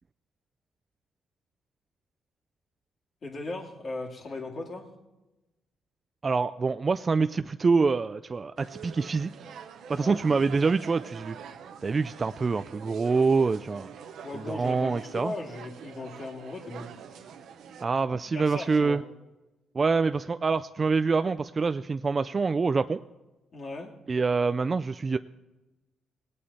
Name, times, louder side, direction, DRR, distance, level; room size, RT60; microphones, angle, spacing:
voice 1, 3.2-4.9 10.0-10.2 14.2-17.2 18.3-19.0 23.5-23.9, left 2 dB, 45° left, 0 dB, 2.5 m, -38 dB
voice 2, 6.2-9.3 9.9-11.4 11.8-13.9 14.3-15.3 17.8-19.0 19.7-23.0 24.1-25.2, right 4 dB, 35° right, 11 dB, 0.3 m, -26 dB
sound 1, 8.6-17.8, right 7 dB, 75° right, 0.9 m, -45 dB
19.0 x 8.5 x 4.2 m, 1.1 s
cardioid pair, 90°, 0 cm